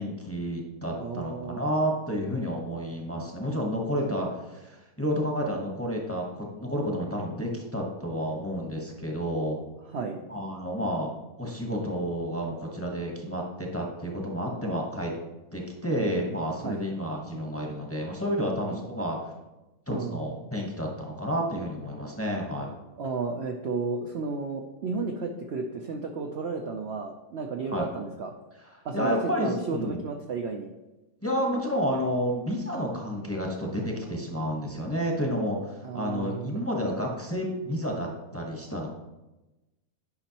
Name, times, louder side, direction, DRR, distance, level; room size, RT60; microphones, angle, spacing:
voice 1, 0.0-9.6 10.3-15.1 15.5-19.2 19.9-22.7 27.7-27.9 28.9-30.0 31.2-38.9, equal, 10° left, -1 dB, 0.7 m, -30 dB
voice 2, 1.0-1.8 9.9-10.2 16.6-16.8 18.7-18.8 19.9-20.2 23.0-28.4 28.8-30.7 35.8-36.6, right 4 dB, 90° right, 2 dB, 0.5 m, -33 dB
9.8 x 5.3 x 2.9 m, 1.0 s
omnidirectional pair, 1.8 m